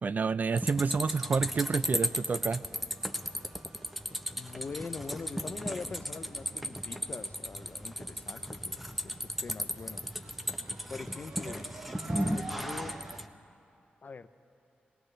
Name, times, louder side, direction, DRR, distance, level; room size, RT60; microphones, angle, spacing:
voice 1, 0.0-2.7, right 5 dB, 50° right, 15 dB, 0.4 m, -29 dB
Bat chirp (close-up), 0.6-13.3, equal, 5° right, 0.9 m, -35 dB
sound 1, 0.6-13.2, right 4 dB, 70° right, 0.7 m, -52 dB
voice 2, 4.4-10.0 10.9-11.7 12.1-12.9 14.0-14.3, left 4 dB, 50° left, 11 dB, 0.6 m, -43 dB
21.5 x 19.0 x 3.3 m, 2.8 s
cardioid pair, 65°, 4 cm